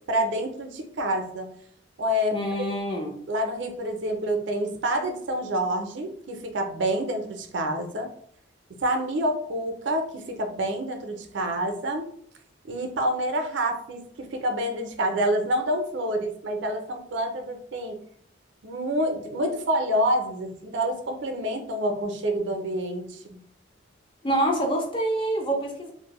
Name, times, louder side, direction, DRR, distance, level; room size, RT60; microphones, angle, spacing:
voice 1, 0.1-1.5 2.0-2.4 3.3-8.1 8.8-12.1 12.7-18.0 18.6-23.4, right 1 dB, 65° right, 4 dB, 0.4 m, -27 dB
voice 2, 2.3-3.2 24.2-25.9, right 1 dB, 25° left, 1 dB, 0.4 m, -26 dB
2.5 x 2.0 x 2.9 m, 0.62 s
head